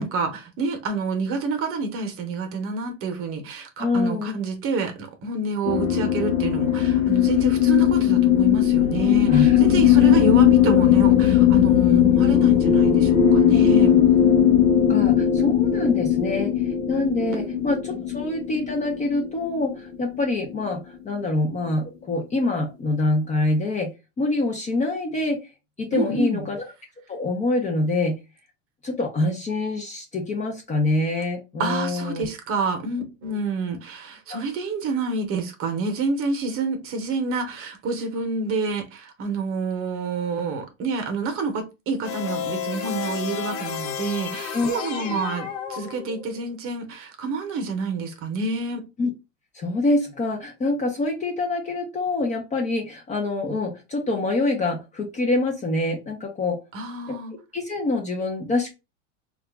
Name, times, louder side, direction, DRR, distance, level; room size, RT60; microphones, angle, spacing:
voice 1, 0.0-13.9 17.3-17.6 25.9-26.5 31.6-48.8 56.7-57.3, right 4 dB, 35° right, 0.9 m, -28 dB
voice 2, 3.8-4.3 9.3-9.6 10.1-10.3 13.5-13.6 13.9-14.0 14.9-23.9 24.2-25.4 25.8-26.6 27.1-28.2 28.8-32.2 34.3-34.4 44.5-44.7 45.1-45.2 49.0-49.1 49.5-56.6 57.1-57.2 57.5-58.7, left 2 dB, 20° left, 0.6 m, -25 dB
sound 1, 5.6-20.2, left 10 dB, 80° left, 0.7 m, -18 dB
sound 2, 42.0-46.4, left 8 dB, 50° left, 0.8 m, -31 dB
2.8 x 2.4 x 3.5 m
supercardioid pair, 120°, 38 cm